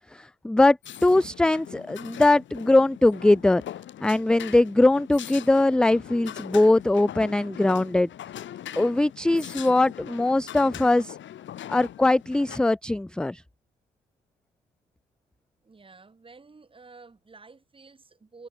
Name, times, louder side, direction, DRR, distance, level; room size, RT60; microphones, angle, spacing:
voice 1, 0.1-0.8 1.0-3.6 4.0-8.1 8.8-11.2 11.7-13.4, left 2 dB, 5° left, 0.3 m, -21 dB
sound 1, 0.8-12.6, left 11 dB, 70° left, 3.7 m, -41 dB
voice 2, 15.6-18.5, right 4 dB, 25° right, 3.8 m, -50 dB
cardioid pair, 90°, 20 cm